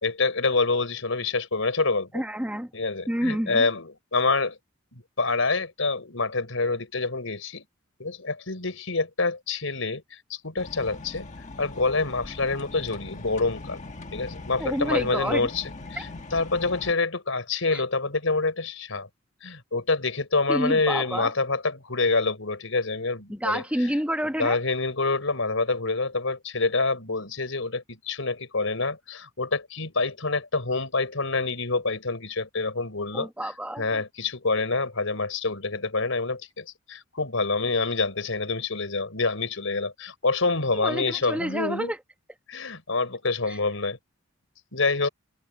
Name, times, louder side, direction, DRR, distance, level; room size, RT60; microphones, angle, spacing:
voice 1, 0.0-2.1 2.7-4.6 4.9-7.6 8.0-11.3 11.6-13.8 14.1-19.1 19.4-23.9 24.4-33.3 33.8-41.9 42.5-44.0 44.7-45.1, left 3 dB, 75° left, 4.3 m, -27 dB
voice 2, 2.1-2.7 3.1-3.7 14.6-15.5 16.0-16.1 17.7-17.8 20.5-21.3 23.3-24.6 33.1-34.0 40.7-42.0 43.5-43.6, equal, 5° right, 1.3 m, -29 dB
sound 1, 10.6-16.9, left 2 dB, 35° left, 1.6 m, -40 dB
head